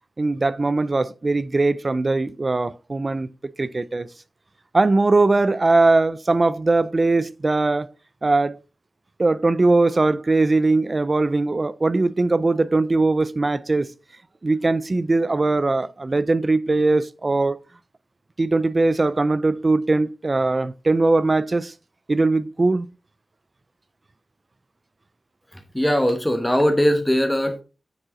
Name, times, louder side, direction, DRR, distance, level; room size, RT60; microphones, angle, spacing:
voice 1, 0.2-3.3 3.6-4.1 4.7-7.9 8.2-8.6 9.2-13.9 14.4-17.6 18.4-21.7 22.1-22.9, right 3 dB, 30° right, 0.4 m, -20 dB
voice 2, 25.7-27.6, equal, 5° left, 1.1 m, -20 dB
9.7 x 5.4 x 3.8 m
wide cardioid pair, 125°, 0 cm